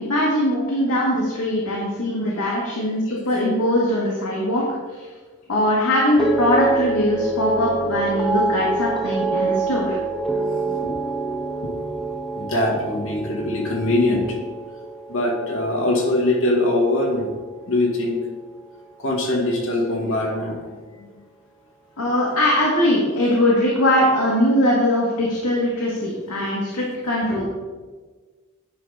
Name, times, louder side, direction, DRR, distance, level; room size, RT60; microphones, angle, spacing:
voice 1, 0.1-5.1 5.5-10.0 22.0-27.4, left 1 dB, 80° left, -4 dB, 1.5 m, -21 dB
voice 2, 2.1-2.6 3.1-3.5 10.3-10.9 11.6-11.7 12.3-14.4 15.1-17.3 17.7-18.2 19.0-20.7 21.0-21.1 27.4-27.5, left 1 dB, 60° left, -1 dB, 1.8 m, -23 dB
sound 1, 6.2-16.6 16.8-17.4, right 3 dB, ahead, 0.4 m, -26 dB
9.8 x 3.5 x 5.4 m, 1.4 s
head